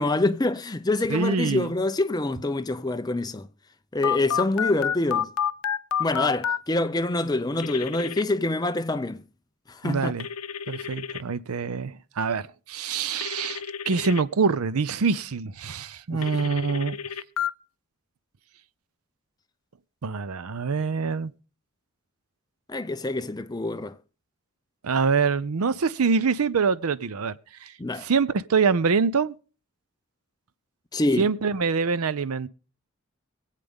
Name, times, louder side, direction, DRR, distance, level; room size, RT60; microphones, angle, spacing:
voice 1, 0.0-3.5 3.9-5.3 6.0-9.2 9.7-10.1 16.1-16.2 22.7-24.0 27.8-28.1 30.9-31.3, left 2 dB, 20° left, 0.5 m, -26 dB
voice 2, 1.1-1.7 9.8-10.3 10.7-17.0 20.0-21.3 24.8-27.3 27.6-29.3 31.2-32.5, right 5 dB, 90° right, 0.6 m, -25 dB
Telephone, 4.0-6.6 7.6-8.2 10.2-11.2 13.2-14.2 16.2-17.5, left 8 dB, 85° left, 0.6 m, -29 dB
23.0 x 8.3 x 3.6 m
head